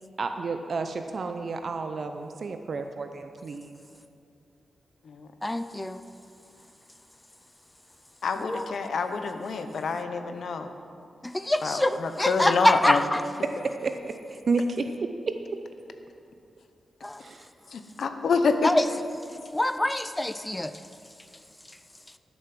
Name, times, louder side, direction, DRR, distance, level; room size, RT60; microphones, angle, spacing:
voice 1, 0.2-3.8 13.6-14.9 15.3-15.4 17.2-17.5, right 4 dB, 50° right, 7 dB, 0.5 m, -31 dB
voice 2, 5.4-6.0 8.5-8.6 11.2-13.2 17.0-17.2 18.6-18.8 19.5-20.7, left 1 dB, 10° left, 11 dB, 0.3 m, -25 dB
voice 3, 8.2-10.7 11.6-13.0 17.7-18.7, left 5 dB, 70° left, 8 dB, 0.8 m, -27 dB
12.0 x 7.1 x 6.0 m, 2.5 s
wide cardioid pair, 120°, 0 cm